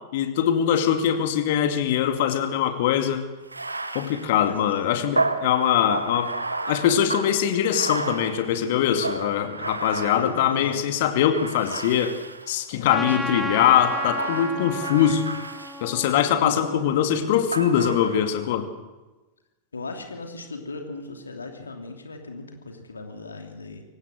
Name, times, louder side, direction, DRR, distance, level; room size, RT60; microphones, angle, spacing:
voice 1, 0.1-3.3 3.9-6.3 6.6-12.2 12.5-15.2 15.8-18.7, left 9 dB, 50° left, 7 dB, 2.4 m, -22 dB
Bathtub (filling or washing), 3.4-10.8 11.3-12.6 13.2-16.4 17.5-18.5, right 2 dB, 80° right, 1.2 m, -32 dB
voice 2, 4.4-4.9 10.1-10.9 12.9-13.8 16.4-17.3 19.7-23.8, left 3 dB, 75° left, 4 dB, 2.8 m, -37 dB
Trumpet, 12.9-17.5, left 1 dB, ahead, 1.3 m, -34 dB
24.0 x 18.5 x 6.5 m, 1.1 s
figure-of-eight pair, 90°, 0 cm